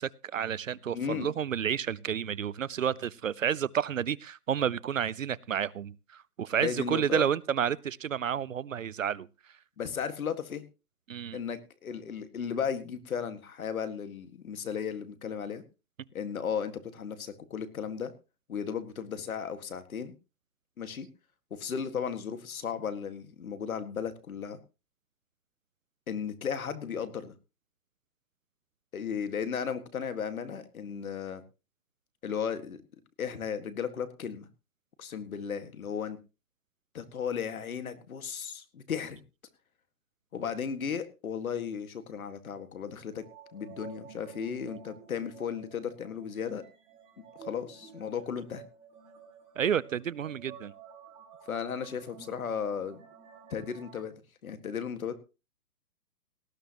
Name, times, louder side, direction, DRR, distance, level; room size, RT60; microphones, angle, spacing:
voice 1, 0.0-9.3 11.1-11.4 49.6-50.7, right 8 dB, 55° right, 22 dB, 0.6 m, -30 dB
voice 2, 0.9-1.3 6.6-7.3 9.8-10.6 11.3-15.6 16.1-18.1 18.5-20.1 20.8-21.1 21.5-24.6 26.1-27.3 28.9-31.4 32.2-32.8 33.2-34.5 35.0-36.2 36.9-39.2 40.3-43.2 43.5-46.6 47.2-48.6 51.5-53.0 53.5-54.1 54.4-55.1, left 7 dB, 60° left, 10 dB, 2.0 m, -35 dB
sound 1, 43.1-54.0, right 6 dB, 10° right, 2.5 m, -52 dB
18.5 x 12.5 x 3.0 m, 0.31 s
hypercardioid pair, 175°, 47 cm